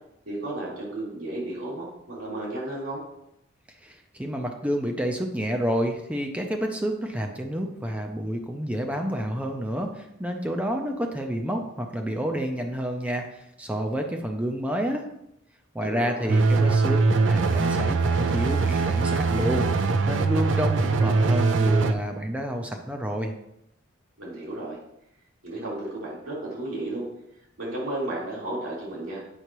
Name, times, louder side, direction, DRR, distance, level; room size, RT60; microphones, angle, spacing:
voice 1, 0.3-3.0 15.8-16.4 24.2-24.8 25.4-27.1 27.6-29.2, right 1 dB, 85° right, -5 dB, 2.8 m, -33 dB
voice 2, 3.8-15.1 15.7-19.7 20.0-23.3, equal, 5° right, 3 dB, 0.5 m, -29 dB
sound 1, 16.3-21.9, right 3 dB, 65° right, 0.5 m, -22 dB
8.1 x 5.6 x 3.0 m, 0.80 s
head